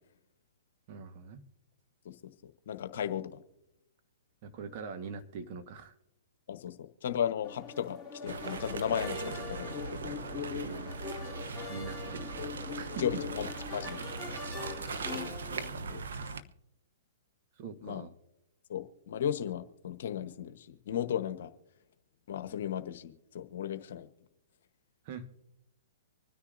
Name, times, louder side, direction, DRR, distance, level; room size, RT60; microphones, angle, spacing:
voice 1, 0.9-1.4 4.4-5.9 10.6-11.0 11.7-12.4 12.7-13.2 17.6-18.1 25.0-25.3, right 5 dB, 45° right, 8 dB, 1.4 m, -43 dB
voice 2, 2.4-3.4 6.5-10.2 13.0-13.5 13.7-14.0 15.7-16.0 16.3-16.4 17.8-18.0 18.7-21.5 22.3-24.1, left 9 dB, 65° left, 10 dB, 1.1 m, -35 dB
sound 1, 7.4-15.7, left 6 dB, ahead, 2.7 m, -42 dB
sound 2, 8.3-16.4, right 4 dB, 75° right, 0.8 m, -40 dB
25.5 x 9.9 x 2.6 m, 0.87 s
hypercardioid pair, 125°, 0 cm